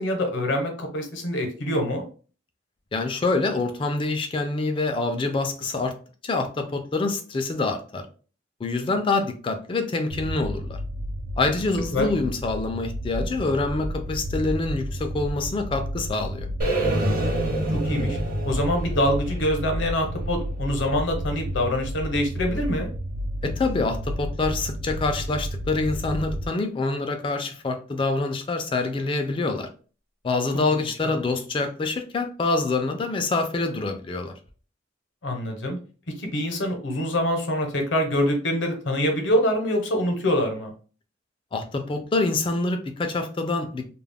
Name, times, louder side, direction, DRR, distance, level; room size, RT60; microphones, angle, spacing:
voice 1, 0.0-2.1 11.9-12.1 17.7-18.2 18.4-22.9 31.0-31.2 35.2-35.8 36.2-40.7, left 1 dB, 75° left, 4 dB, 0.7 m, -25 dB
voice 2, 2.9-5.9 6.2-8.0 8.6-10.8 11.4-16.5 23.4-29.7 30.2-34.3 41.5-43.8, left 3 dB, 25° left, 5 dB, 0.3 m, -26 dB
sound 1, 10.1-26.5, equal, 75° right, 0.3 m, -32 dB
sound 2, 16.6-20.6, right 1 dB, 50° right, 0.8 m, -27 dB
2.3 x 2.0 x 3.3 m, 0.38 s
head